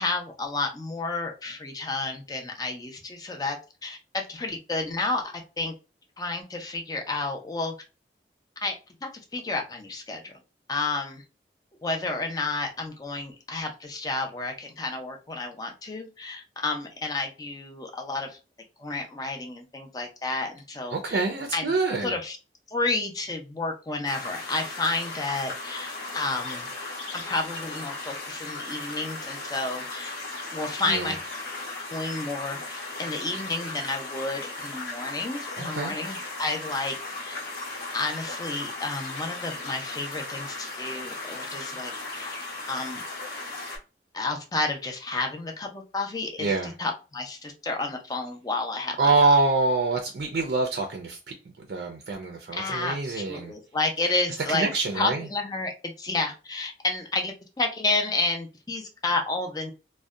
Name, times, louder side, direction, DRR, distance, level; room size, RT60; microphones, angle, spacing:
voice 1, 0.0-3.6 3.8-5.7 6.2-7.7 8.6-8.8 9.0-10.4 10.7-11.2 11.8-18.4 18.8-21.2 21.5-21.7 22.0-22.4 22.7-26.7 27.1-30.2 30.5-31.2 31.9-37.4 37.9-42.4 42.7-43.0 44.1-49.1 52.5-54.7 54.9-59.7, left 3 dB, 20° left, 0.4 m, -31 dB
voice 2, 20.9-22.2 30.9-31.1 35.6-35.9 46.4-46.7 49.0-53.5 54.5-55.3, right 3 dB, 60° right, 0.4 m, -25 dB
sound 1, 24.0-43.8, left 2 dB, 65° left, 0.9 m, -36 dB
2.6 x 2.1 x 2.3 m
head